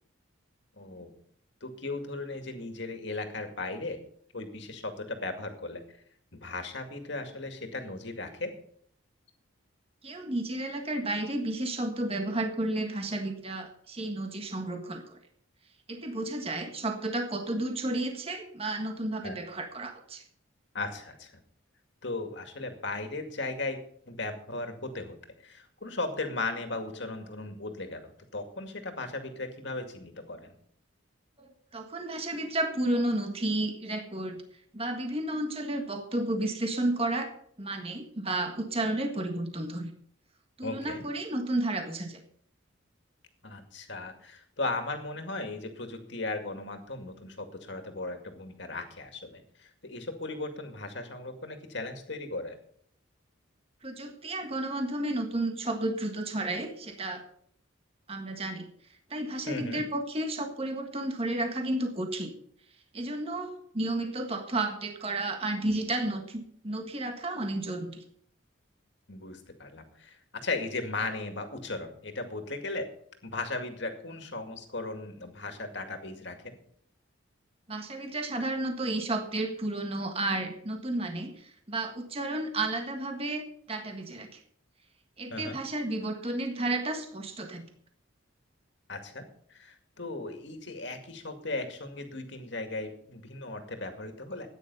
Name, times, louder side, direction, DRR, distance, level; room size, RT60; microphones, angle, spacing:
voice 1, 0.8-1.1 1.6-4.0 4.3-6.0 6.3-8.6 19.2-19.3 20.7-21.4 22.0-23.8 24.1-25.2 25.4-30.5 40.6-41.0 43.4-52.6 59.5-59.8 69.1-72.9 73.2-76.6 85.3-85.6 88.9-94.5, left 2 dB, 60° left, 6 dB, 2.2 m, -37 dB
voice 2, 10.0-15.2 15.9-20.2 31.4-34.4 34.7-37.3 37.6-39.9 40.6-42.2 53.8-57.2 58.1-58.7 59.1-62.3 62.9-68.0 77.7-84.4 85.2-87.7, right 2 dB, 30° right, 5 dB, 1.6 m, -32 dB
14.0 x 9.7 x 5.5 m, 0.62 s
head